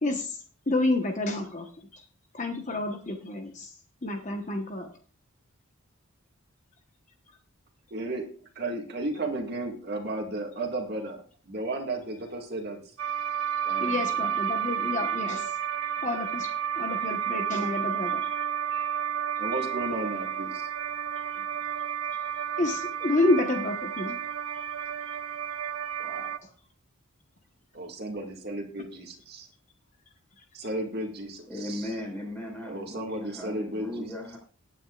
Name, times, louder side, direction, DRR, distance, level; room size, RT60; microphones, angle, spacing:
voice 1, 0.0-2.0 2.3-4.9 13.8-15.6 16.0-16.5 16.8-18.4 18.7-18.9 21.3-21.4 22.6-24.2 24.5-24.7 25.1-25.2 26.4-26.5 30.4-30.5, left 2 dB, 35° left, 4 dB, 1.2 m, -29 dB
voice 2, 7.9-8.3 8.6-12.8 13.6-14.3 19.4-20.7 26.0-26.5 27.7-29.5 30.5-31.9 32.7-34.1, right 2 dB, 50° right, 2 dB, 2.0 m, -34 dB
sound 1, 13.0-26.4, right 8 dB, 75° right, 0.6 m, -31 dB
voice 3, 31.5-34.4, left 1 dB, 5° left, -1 dB, 4.9 m, -37 dB
19.5 x 9.0 x 2.4 m, 0.41 s
head